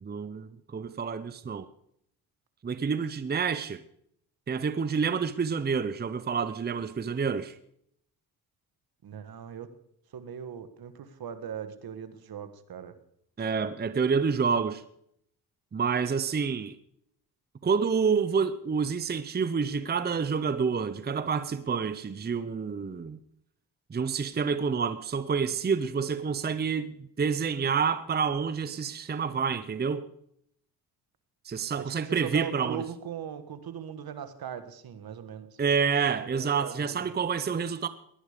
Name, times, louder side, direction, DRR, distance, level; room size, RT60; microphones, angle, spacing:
voice 1, 0.0-1.7 2.6-3.8 4.5-7.6 13.4-14.8 15.7-16.8 17.6-23.2 23.9-30.1 31.4-32.8 35.6-37.9, right 6 dB, 25° right, 0.7 m, -28 dB
voice 2, 9.0-9.7 10.1-12.9 32.0-35.6 36.2-37.1, right 8 dB, 65° right, 1.6 m, -39 dB
18.5 x 11.5 x 5.1 m
cardioid pair, 85°, 39 cm